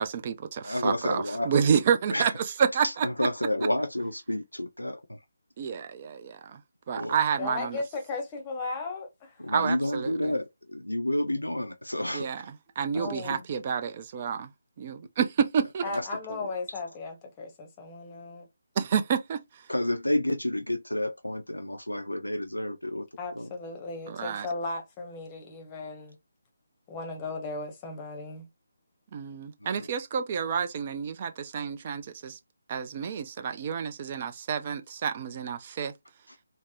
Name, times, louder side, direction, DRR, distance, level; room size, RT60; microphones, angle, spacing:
voice 1, 0.0-2.3 2.7-2.8 5.6-6.6 6.9-7.8 9.5-10.3 12.1-12.4 12.8-14.5 14.8-15.8 18.8-19.4 24.1-24.5 29.1-32.4 32.7-35.9, right 7 dB, 30° right, 0.4 m, -29 dB
voice 2, 0.6-1.7 2.1-2.3 2.8-5.2 7.0-7.2 9.4-12.5 12.9-13.4 15.6-16.5 19.7-23.1 23.3-23.5 29.6-29.9 36.3-36.4, left 1 dB, 90° left, 0.4 m, -30 dB
voice 3, 7.4-9.4 12.9-13.5 15.8-18.5 23.2-26.2 26.9-28.5, left 3 dB, 20° left, 0.8 m, -36 dB
3.3 x 2.0 x 2.7 m
figure-of-eight pair, 150°, 0 cm